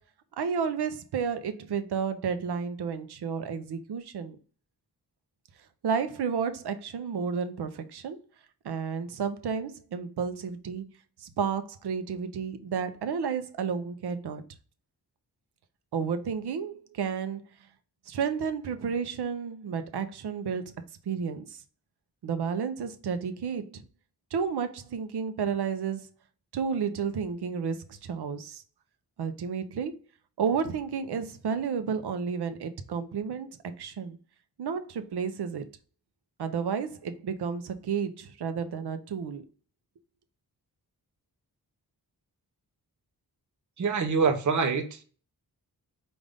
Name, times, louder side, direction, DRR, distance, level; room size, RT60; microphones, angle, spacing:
voice 1, 0.4-4.4 5.8-8.2 8.6-10.8 11.2-14.4 15.9-17.4 18.1-20.7 21.1-21.6 22.2-23.8 24.3-26.1 26.5-28.6 29.2-29.9 30.4-33.5 33.8-34.2 34.6-35.6 36.4-39.4, right 6 dB, 80° right, 0.7 m, -31 dB
voice 2, 43.8-45.0, right 5 dB, 50° right, 0.7 m, -25 dB
5.2 x 2.5 x 3.4 m
wide cardioid pair, 90°, 39 cm